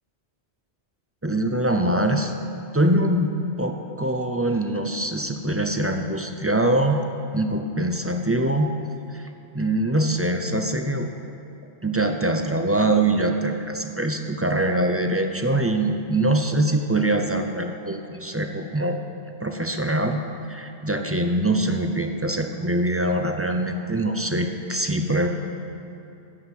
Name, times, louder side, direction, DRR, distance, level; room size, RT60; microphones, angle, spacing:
voice 1, 1.2-2.3 2.7-7.0 7.3-8.8 9.1-9.3 9.5-11.1 11.8-19.0 19.4-20.2 20.5-25.3, right 1 dB, 20° right, 5 dB, 0.4 m, -23 dB
12.5 x 7.9 x 5.9 m, 2.7 s
omnidirectional pair, 1.1 m